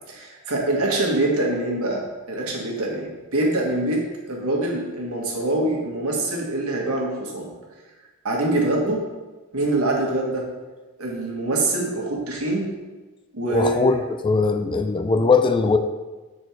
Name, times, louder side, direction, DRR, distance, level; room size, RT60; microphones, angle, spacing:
voice 1, 0.1-2.0 2.3-7.5 8.2-9.0 9.5-10.4 11.0-12.7 13.3-13.7, right 2 dB, 80° right, -1 dB, 1.5 m, -24 dB
voice 2, 13.5-15.8, left 4 dB, 20° left, 7 dB, 0.3 m, -20 dB
6.6 x 4.4 x 4.5 m, 1.3 s
head